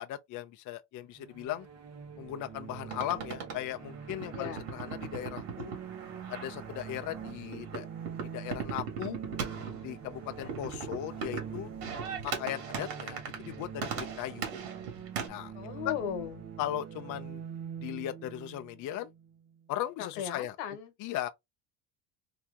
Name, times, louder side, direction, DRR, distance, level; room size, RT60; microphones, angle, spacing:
voice 1, 0.0-1.7 2.2-5.7 6.3-7.9 8.3-9.2 9.8-11.7 12.2-14.5 15.3-15.5 15.8-15.9 16.6-17.4 17.8-19.1 19.7-20.6 21.0-21.3, left 13 dB, 45° left, 0.5 m, -37 dB
sound 1, 1.1-19.8, right 7 dB, 35° right, 0.9 m, -45 dB
sound 2, 2.9-15.3, right 6 dB, 85° right, 1.9 m, -40 dB
voice 2, 15.5-16.4 20.0-20.9, left 8 dB, 85° left, 1.3 m, -37 dB
3.3 x 2.9 x 3.5 m
supercardioid pair, 110°, 45 cm